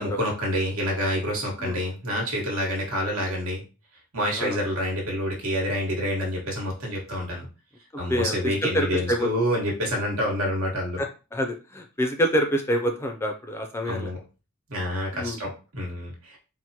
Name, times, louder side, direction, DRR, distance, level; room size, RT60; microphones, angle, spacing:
voice 1, 0.0-3.6 4.1-7.5 8.0-11.0 13.8-14.2 14.7-16.4, equal, 85° right, 0 dB, 1.3 m, -28 dB
voice 2, 8.1-9.3 11.0-14.1 15.1-15.4, equal, 10° left, 4 dB, 0.3 m, -26 dB
4.4 x 2.1 x 2.7 m, 0.33 s
head